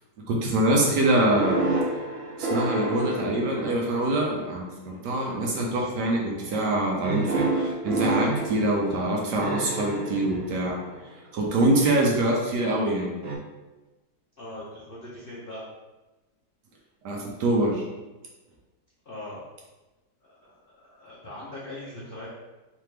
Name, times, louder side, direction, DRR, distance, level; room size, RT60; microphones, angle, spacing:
voice 1, 0.3-1.6 2.4-10.8 11.3-13.2 17.0-17.8, right 1 dB, 65° right, -1 dB, 1.2 m, -24 dB
sound 1, 1.1-4.4 5.2-5.6 7.0-11.1 13.2-13.4, right 2 dB, 85° right, 0.5 m, -29 dB
voice 2, 14.4-15.6 19.0-19.4 20.2-22.3, left 1 dB, 80° left, -7 dB, 0.5 m, -41 dB
3.4 x 3.3 x 3.3 m, 1.1 s
omnidirectional pair, 2.1 m